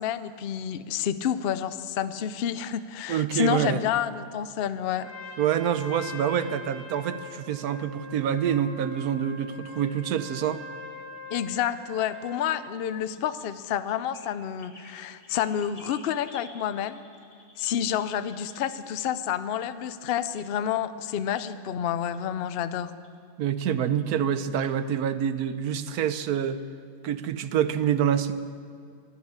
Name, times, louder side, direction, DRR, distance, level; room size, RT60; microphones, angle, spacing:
voice 1, 0.0-5.1 11.3-17.0 17.6-22.9, left 9 dB, 65° left, 12 dB, 0.6 m, -29 dB
voice 2, 3.1-3.8 5.4-10.6 23.4-26.6 27.0-28.3, right 9 dB, 70° right, 12 dB, 1.2 m, -26 dB
Trumpet, 4.9-12.5, left 2 dB, 5° right, 4.0 m, -43 dB
sound 1, 11.1-12.5 13.0-13.5 13.9-18.8 20.1-20.5 20.8-20.9 21.3-21.8 22.1-22.2 22.8-23.1 23.9-24.3 24.6-24.8 25.5-25.7 26.3-26.5, left 1 dB, 25° left, 1.7 m, -53 dB
23.5 x 8.1 x 7.3 m, 2.3 s
omnidirectional pair, 1.8 m